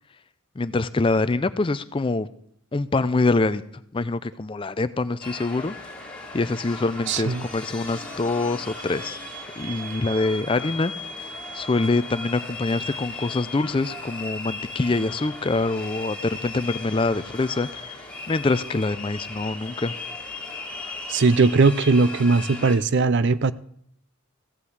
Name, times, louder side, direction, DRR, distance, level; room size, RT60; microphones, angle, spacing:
voice 1, 0.6-2.3 2.7-3.6 3.9-5.7 6.3-9.2 9.6-10.9 11.5-18.0 18.3-20.0, left 3 dB, 25° left, 0.4 m, -25 dB
sound 1, 5.2-22.8, left 2 dB, 5° left, 2.3 m, -36 dB
voice 2, 7.1-7.5 21.1-23.5, right 3 dB, 55° right, 0.5 m, -19 dB
15.0 x 5.8 x 8.0 m
head